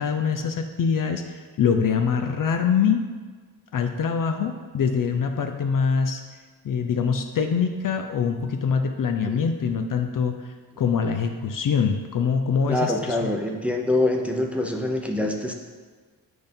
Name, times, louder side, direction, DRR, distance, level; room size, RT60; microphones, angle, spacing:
voice 1, 0.0-3.0 3.7-6.2 6.6-10.4 10.8-13.3, left 6 dB, 55° left, 5 dB, 0.6 m, -24 dB
voice 2, 12.7-15.5, left 1 dB, 5° right, 1 dB, 0.7 m, -25 dB
7.8 x 2.7 x 5.2 m, 1.5 s
cardioid pair, 75°, 40 cm